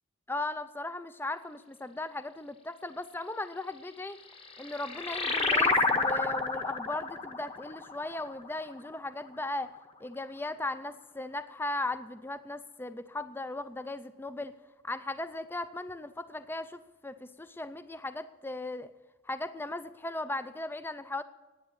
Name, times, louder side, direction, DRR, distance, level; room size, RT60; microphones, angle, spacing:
voice 1, 0.3-4.2 4.6-9.7 10.0-14.5 14.8-18.9 19.3-21.2, left 2 dB, 10° left, 12 dB, 0.4 m, -37 dB
sound 1, 4.2-9.3, left 3 dB, 30° left, 1.0 m, -30 dB
10.0 x 9.1 x 8.5 m, 1.2 s
head